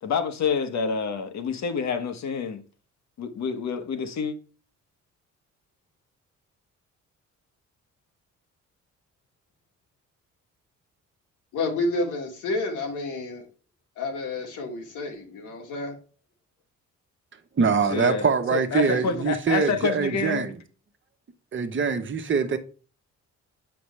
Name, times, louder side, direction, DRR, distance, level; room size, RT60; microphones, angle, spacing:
voice 1, 0.0-2.6 3.2-4.3 17.9-20.5, left 6 dB, 65° left, 1.3 m, -28 dB
voice 2, 11.5-13.4 14.0-16.0 18.9-19.2, left 2 dB, 90° left, 2.3 m, -30 dB
voice 3, 17.6-20.6 21.5-22.6, right 5 dB, 40° right, 1.1 m, -24 dB
7.0 x 5.9 x 3.3 m
cardioid pair, 90°, 30 cm